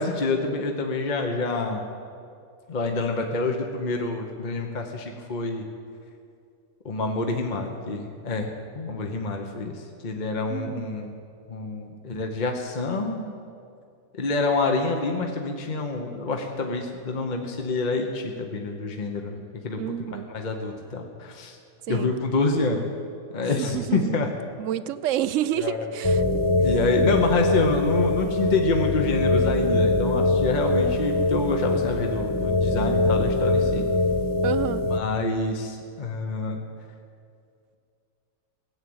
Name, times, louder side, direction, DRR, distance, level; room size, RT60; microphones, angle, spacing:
voice 1, 0.0-1.8 2.7-5.6 6.8-8.5 8.7-9.7 10.0-11.1 11.5-13.3 14.1-19.4 19.6-19.8 20.3-21.6 21.9-22.8 23.3-24.3 25.6-25.8 26.6-33.8 34.9-36.6, left 3 dB, 35° left, 3 dB, 1.1 m, -27 dB
voice 2, 10.5-10.9 19.8-20.3 21.9-22.2 23.6-24.3 24.6-26.4 34.4-34.9, right 11 dB, 70° right, 15 dB, 0.9 m, -29 dB
sound 1, 26.0-35.0, left 2 dB, 20° left, 0.6 m, -23 dB
16.5 x 8.8 x 7.9 m, 2.4 s
omnidirectional pair, 1.4 m